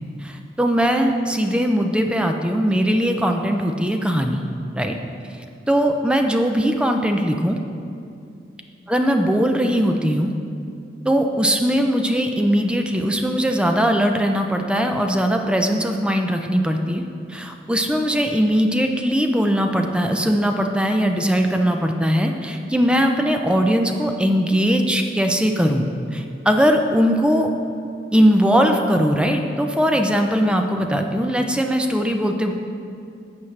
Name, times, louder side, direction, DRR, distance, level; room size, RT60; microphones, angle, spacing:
voice 1, 0.2-4.4 4.7-5.0 5.7-7.6 8.9-10.3 11.0-17.0 17.3-25.9 26.1-27.5 28.1-32.5, equal, 5° right, 4 dB, 0.4 m, -20 dB
12.0 x 7.1 x 3.2 m, 2.5 s
head